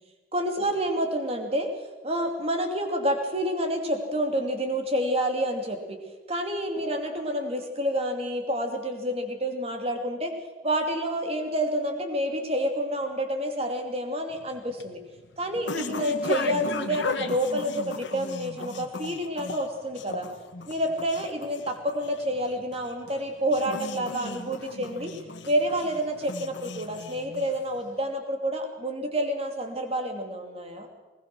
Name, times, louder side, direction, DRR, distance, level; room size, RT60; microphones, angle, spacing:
voice 1, 0.3-1.7 2.0-10.3 10.6-15.0 15.4-20.3 20.7-25.1 25.4-30.9, equal, 30° right, 4 dB, 2.8 m, -28 dB
sound 1, 14.3-27.9, left 3 dB, 65° left, 1.5 m, -37 dB
21.0 x 21.0 x 6.2 m, 1.2 s
head